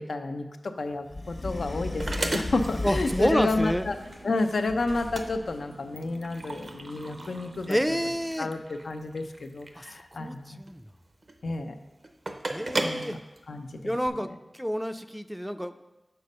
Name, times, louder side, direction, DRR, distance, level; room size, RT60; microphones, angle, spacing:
voice 1, 0.0-4.0 4.2-7.8 8.4-10.6 11.4-11.8 12.8-13.2 13.5-13.9, left 3 dB, 85° left, 6 dB, 0.5 m, -30 dB
sound 1, 0.8-14.1, right 2 dB, 60° right, 0.6 m, -37 dB
sound 2, 1.1-4.1 4.7-5.6, left 2 dB, 60° left, 1.2 m, -36 dB
voice 2, 2.8-3.9 7.7-8.5 9.8-10.8 12.5-13.2 13.8-15.8, equal, 5° right, 10 dB, 0.4 m, -29 dB
sound 3, 2.9-8.7, right 1 dB, 85° right, 1.5 m, -48 dB
6.8 x 4.0 x 5.4 m, 1.1 s
wide cardioid pair, 60°, 0 cm